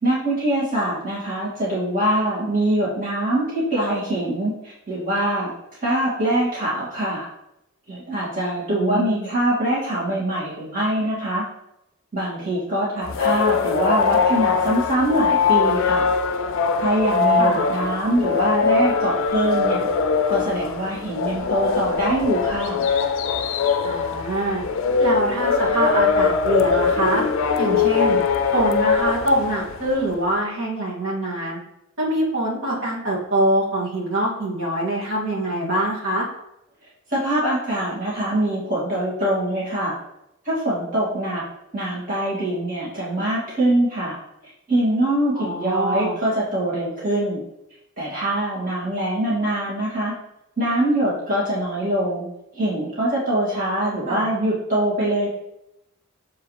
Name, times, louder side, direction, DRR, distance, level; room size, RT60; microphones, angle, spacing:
voice 1, 0.0-5.5 5.8-7.3 7.9-11.4 12.1-16.1 16.8-19.9 20.3-22.9 37.1-40.0 40.4-41.4 41.7-44.2 44.7-47.4 48.0-50.1 50.6-52.3 52.5-55.3, right 1 dB, 40° right, -8 dB, 2.3 m, -23 dB
voice 2, 8.7-9.3 17.4-17.6 23.8-24.6 25.0-27.2 27.6-28.2 28.5-31.6 32.0-36.3 45.3-46.1 54.1-54.3, right 1 dB, 60° right, -6 dB, 2.3 m, -24 dB
sound 1, 13.1-30.1, left 5 dB, 65° left, 0.4 m, -21 dB
7.2 x 4.8 x 3.3 m, 0.84 s
head